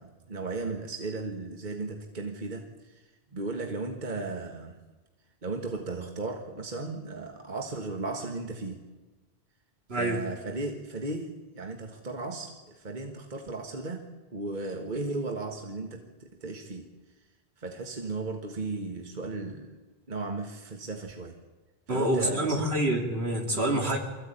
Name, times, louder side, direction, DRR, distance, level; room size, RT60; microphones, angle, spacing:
voice 1, 0.0-4.8 5.4-8.8 10.0-16.9 17.6-19.8 20.1-21.4 21.9-22.7 23.5-23.8, right 3 dB, 50° right, 3 dB, 1.7 m, -36 dB
voice 2, 9.9-10.2 21.9-24.0, right 1 dB, 75° right, 1 dB, 3.2 m, -27 dB
24.0 x 15.0 x 8.9 m, 1.3 s
omnidirectional pair, 1.1 m